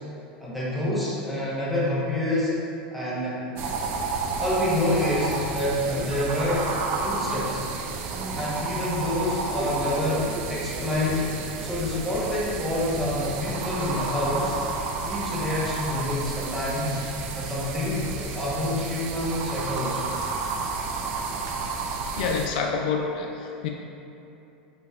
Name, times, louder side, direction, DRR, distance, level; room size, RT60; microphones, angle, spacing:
voice 1, 0.4-2.5 2.9-3.4 4.4-6.7 7.0-7.6 8.3-11.3 11.6-14.6 15.0-17.0 17.4-20.1, left 1 dB, ahead, -8 dB, 1.2 m, -27 dB
sound 1, 3.6-22.5, right 4 dB, 55° right, 0.4 m, -31 dB
voice 2, 22.2-23.7, left 5 dB, 70° left, 2 dB, 0.3 m, -27 dB
5.5 x 2.9 x 2.5 m, 2.9 s
hypercardioid pair, 95°, 5 cm